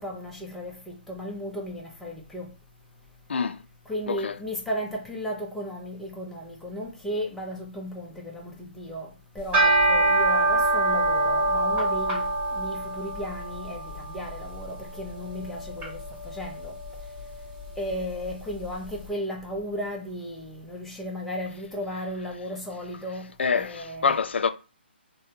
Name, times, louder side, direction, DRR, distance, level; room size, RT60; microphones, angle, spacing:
voice 1, 0.0-2.5 3.9-16.8 17.8-23.3 23.5-24.1, equal, 5° left, 0.7 m, -35 dB
voice 2, 3.3-3.6 4.1-4.4 23.4-24.5, left 5 dB, 75° left, 0.4 m, -26 dB
sound 1, 9.4-18.7, right 2 dB, 15° right, 1.5 m, -26 dB
3.4 x 2.1 x 2.7 m
hypercardioid pair, 155°, 6 cm